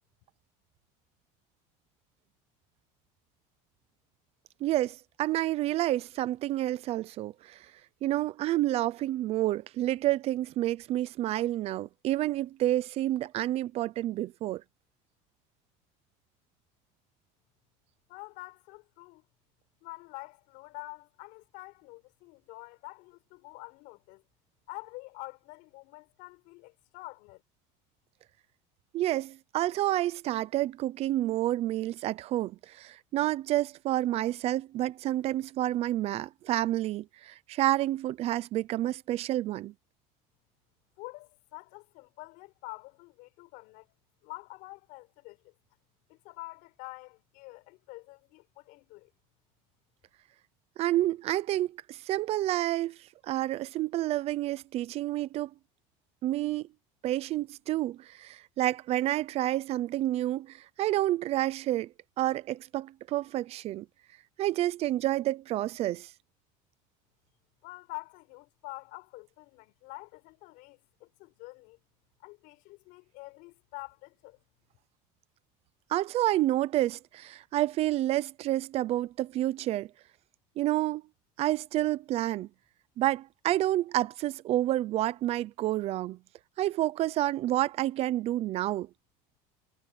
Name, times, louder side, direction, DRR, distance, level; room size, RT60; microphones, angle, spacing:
voice 1, 4.6-7.7 8.0-14.6 28.9-39.7 50.8-55.5 56.2-56.7 57.0-61.9 62.2-63.9 64.4-66.1 75.9-79.9 80.6-81.0 81.4-82.5 83.0-86.2 86.6-88.9, right 14 dB, 40° right, 0.6 m, -29 dB
voice 2, 18.1-19.2 19.8-24.2 24.7-27.4 41.0-43.9 44.2-45.5 46.1-49.1 67.6-71.8 72.2-74.4, left 23 dB, 65° left, 5.0 m, -47 dB
cardioid pair, 155°, 16 cm